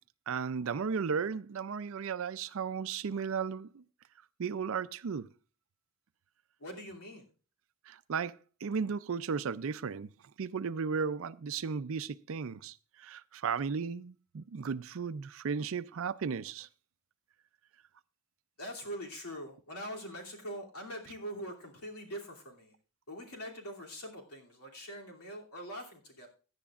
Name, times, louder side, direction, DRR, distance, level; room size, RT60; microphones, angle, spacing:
voice 1, 0.3-3.8 4.4-5.3 7.9-10.1 10.4-16.7, right 6 dB, 60° right, 0.4 m, -35 dB
voice 2, 6.6-7.3 18.6-22.7 23.1-26.3, equal, 85° left, 2.8 m, -43 dB
17.0 x 10.5 x 2.4 m
head